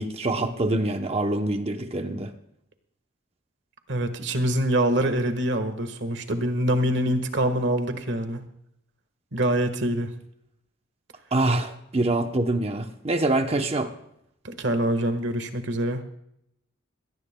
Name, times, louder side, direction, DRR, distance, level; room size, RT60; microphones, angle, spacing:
voice 1, 0.0-2.3 11.3-13.9, right 2 dB, 30° right, 6 dB, 0.8 m, -25 dB
voice 2, 3.9-8.4 9.3-10.1 14.4-16.0, right 1 dB, 65° right, 8 dB, 1.5 m, -25 dB
21.0 x 17.5 x 2.2 m, 0.75 s
head